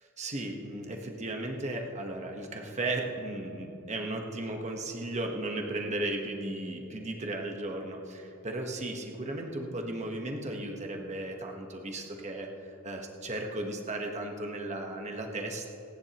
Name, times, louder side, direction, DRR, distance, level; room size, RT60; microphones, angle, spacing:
voice 1, 0.2-15.7, right 2 dB, 30° right, 2 dB, 1.2 m, -35 dB
26.5 x 10.5 x 3.0 m, 2.9 s
head